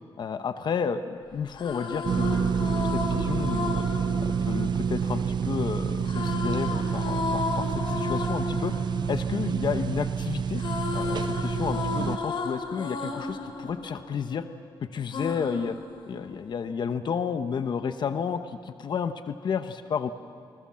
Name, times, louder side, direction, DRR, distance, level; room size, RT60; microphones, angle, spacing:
voice 1, 0.2-3.9 4.2-8.7 9.1-10.6 10.9-14.5 14.8-15.8 16.1-20.1, left 6 dB, 60° left, 9 dB, 1.0 m, -31 dB
sound 1, 1.4-5.5 6.0-10.1 10.4-14.6 15.1-16.6, left 4 dB, 75° left, 3.1 m, -34 dB
sound 2, 2.0-12.2, right 7 dB, 55° right, 0.6 m, -28 dB
28.0 x 20.0 x 7.5 m, 2.3 s
wide cardioid pair, 165°, 9 cm